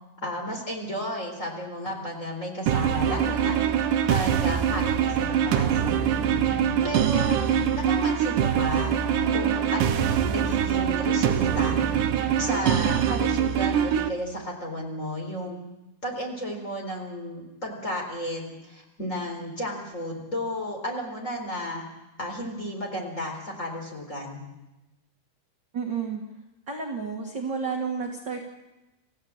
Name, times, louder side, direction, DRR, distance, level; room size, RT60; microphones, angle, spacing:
voice 1, 0.2-3.6 4.1-5.9 6.8-9.0 9.3-11.8 12.4-15.6 16.0-21.8 22.2-24.4, equal, 20° left, 1 dB, 4.0 m, -33 dB
sound 1, 2.7-14.1, right 9 dB, 70° right, 2.3 m, -23 dB
voice 2, 25.7-26.2 26.7-28.5, right 5 dB, 40° right, 1 dB, 1.9 m, -31 dB
27.5 x 16.0 x 7.4 m, 1.0 s
omnidirectional pair, 4.5 m